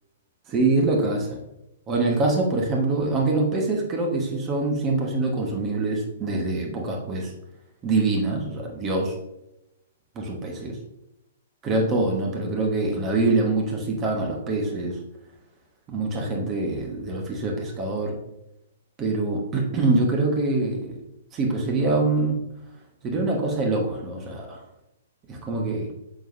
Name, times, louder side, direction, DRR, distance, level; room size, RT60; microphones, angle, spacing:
voice 1, 0.5-1.4 1.9-7.3 7.8-9.1 10.1-10.7 11.6-15.0 15.9-18.1 19.0-20.9 21.3-22.4 23.0-24.6 25.3-25.9, right 2 dB, 20° right, 0 dB, 1.3 m, -24 dB
6.9 x 6.2 x 2.7 m, 0.88 s
figure-of-eight pair, 115°, 0 cm